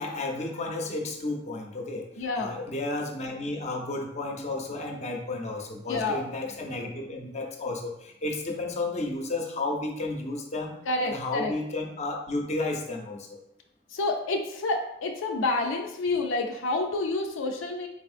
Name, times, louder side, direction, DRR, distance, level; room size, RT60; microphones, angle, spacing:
voice 1, 0.0-10.8 11.0-13.4, left 2 dB, 35° left, 1 dB, 0.6 m, -32 dB
voice 2, 2.2-2.6 5.9-6.2 10.9-11.5 13.9-17.9, left 2 dB, 90° left, 2 dB, 0.5 m, -28 dB
4.0 x 3.4 x 2.5 m, 0.82 s
head